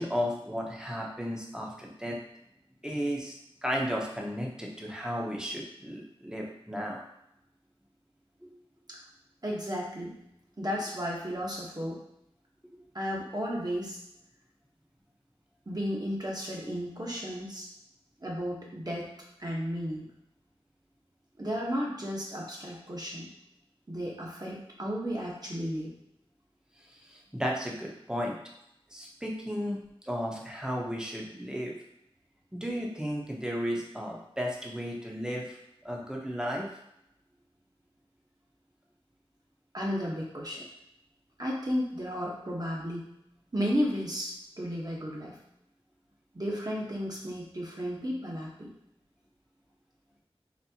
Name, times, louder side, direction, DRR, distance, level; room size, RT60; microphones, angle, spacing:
voice 1, 0.0-2.2 2.8-7.0 8.4-8.5 26.9-28.4 28.9-29.8 30.0-31.7 32.5-35.6 35.8-36.7, equal, 5° right, -1 dB, 0.8 m, -34 dB
voice 2, 9.4-10.1 10.6-12.0 12.9-14.0 15.7-17.7 18.2-19.1 19.4-20.1 21.4-23.3 23.9-25.9 39.7-40.6 41.4-43.1 43.5-45.4 46.3-48.7, equal, 40° right, -3 dB, 1.1 m, -33 dB
4.2 x 3.3 x 2.8 m, 0.80 s
wide cardioid pair, 55°, 10 cm